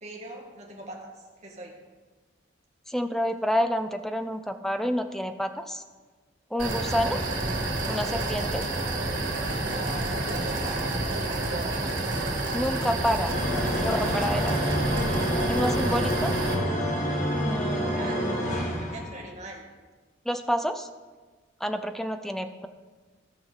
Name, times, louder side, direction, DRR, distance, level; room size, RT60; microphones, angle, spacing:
voice 1, 0.0-1.8 7.1-7.3 9.7-11.9 13.2-14.6 17.9-19.7, right 2 dB, 35° right, -1 dB, 1.8 m, -41 dB
voice 2, 2.9-5.8 6.5-7.2 7.9-8.6 12.5-13.3 13.8-14.6 15.5-16.3 17.4-18.4 20.3-20.9 21.6-22.7, equal, ahead, 7 dB, 0.5 m, -29 dB
sound 1, 6.6-16.5, right 2 dB, 80° right, 2.7 m, -29 dB
sound 2, 13.3-19.3, equal, 40° left, 1.4 m, -28 dB
16.5 x 5.8 x 4.0 m, 1.3 s
head